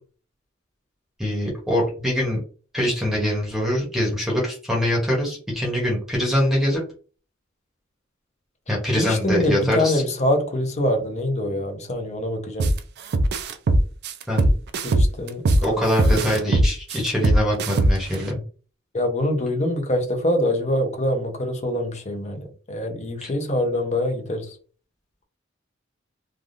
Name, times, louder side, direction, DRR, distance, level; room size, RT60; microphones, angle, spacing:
voice 1, 1.2-2.4 2.7-6.8 8.7-10.0 14.3-14.5 15.6-18.4 23.2-23.3, equal, ahead, 0.9 m, -23 dB
voice 2, 9.0-12.7 14.8-16.2 18.9-24.6, left 1 dB, 35° left, 0.7 m, -25 dB
sound 1, 12.6-12.8 13.1-15.6 16.0-18.1, right 1 dB, 55° right, 0.4 m, -19 dB
3.4 x 2.4 x 2.5 m
head